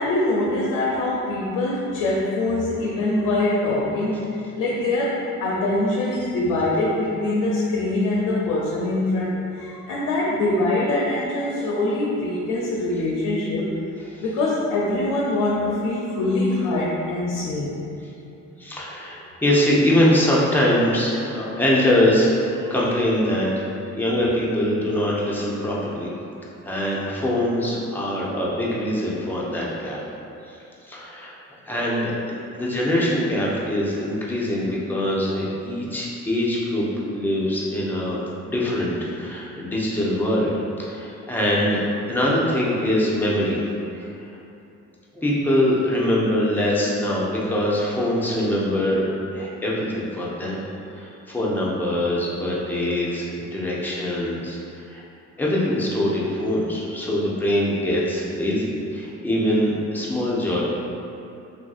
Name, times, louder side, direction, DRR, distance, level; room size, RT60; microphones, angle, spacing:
voice 1, 0.0-13.7 14.2-17.8, left 2 dB, 90° left, -5 dB, 0.5 m, -23 dB
voice 2, 18.6-23.6 23.9-26.1 26.6-30.0 30.5-30.6 30.8-31.3 31.6-36.8 37.1-43.6 44.0-44.1 45.1-50.6 50.9-55.0 55.4-60.6, left 1 dB, 5° left, -6 dB, 0.6 m, -23 dB
3.4 x 2.5 x 2.3 m, 2.7 s
cardioid pair, 90°, 30 cm